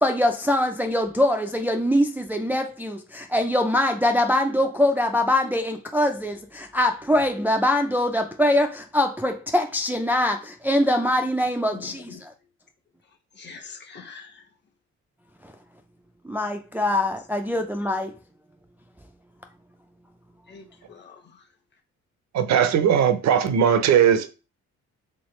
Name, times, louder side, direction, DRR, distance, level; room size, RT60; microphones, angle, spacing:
voice 1, 0.0-12.3 16.2-18.1, left 1 dB, 5° right, 0.3 m, -23 dB
voice 2, 11.7-12.2 13.1-14.5 20.5-21.5, left 5 dB, 35° left, 1.0 m, -44 dB
voice 3, 22.3-24.3, right 8 dB, 65° right, 0.6 m, -19 dB
3.4 x 3.1 x 3.1 m
cardioid pair, 90°, 30 cm